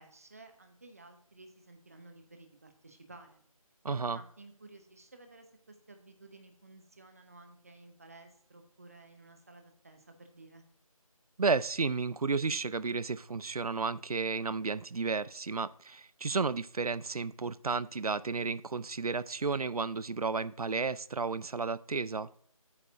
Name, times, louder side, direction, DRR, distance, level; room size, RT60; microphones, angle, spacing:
voice 1, 0.0-3.4 4.1-10.6, right 2 dB, 25° right, 0.7 m, -54 dB
voice 2, 3.8-4.2 11.4-22.3, right 4 dB, 85° right, 0.4 m, -32 dB
8.4 x 6.6 x 2.6 m
figure-of-eight pair, 165°, 19 cm